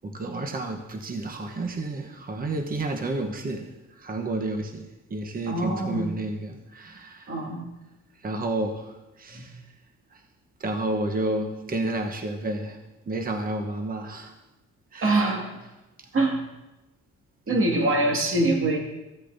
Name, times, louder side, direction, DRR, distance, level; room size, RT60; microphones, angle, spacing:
voice 1, 0.0-7.3 8.2-9.6 10.1-10.2 10.6-12.8 13.1-14.3 14.9-15.2, right 2 dB, 30° right, 4 dB, 1.0 m, -31 dB
voice 2, 5.5-6.1 7.3-7.6 9.3-9.5 15.0-15.5 16.1-16.4 17.5-18.8, right 2 dB, 45° right, 0 dB, 2.2 m, -24 dB
15.0 x 8.4 x 2.7 m, 1.0 s
cardioid pair, 90°, 30 cm